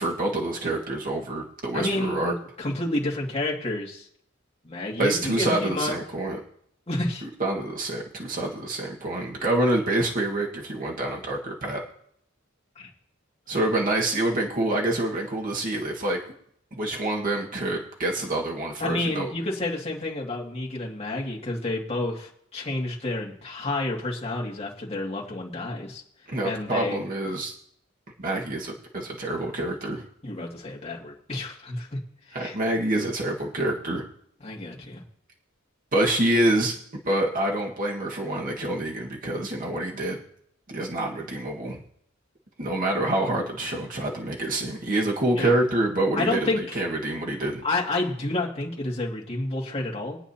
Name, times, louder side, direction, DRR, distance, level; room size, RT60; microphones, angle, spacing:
voice 1, 0.0-2.3 5.0-6.4 7.2-11.8 13.5-16.2 16.7-19.3 26.3-27.5 28.2-30.0 32.3-34.0 35.9-36.8 37.0-40.2 40.7-41.8 42.6-47.6, right 1 dB, 45° right, -1 dB, 1.6 m, -26 dB
voice 2, 1.7-4.1 4.6-5.9 6.9-7.2 12.8-12.9 18.8-26.0 26.4-27.0 30.2-31.9 32.4-32.6 34.4-35.0 45.3-45.5 46.1-46.8 47.6-50.2, left 2 dB, 30° left, -3 dB, 2.2 m, -29 dB
22.0 x 9.0 x 2.9 m, 0.68 s
head